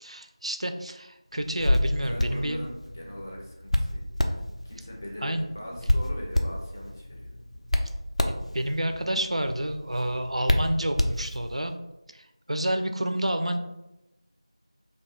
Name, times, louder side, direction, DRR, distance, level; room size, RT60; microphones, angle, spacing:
voice 1, 0.0-2.6 5.2-5.5 8.3-11.8 12.1-13.6, right 1 dB, 70° right, 6 dB, 0.4 m, -29 dB
Hands, 1.4-11.7, left 1 dB, 85° left, 0.4 m, -29 dB
voice 2, 2.0-4.4 4.6-7.3, equal, 20° left, -3 dB, 0.5 m, -41 dB
2.7 x 2.2 x 4.1 m, 0.94 s
figure-of-eight pair, 175°, 3 cm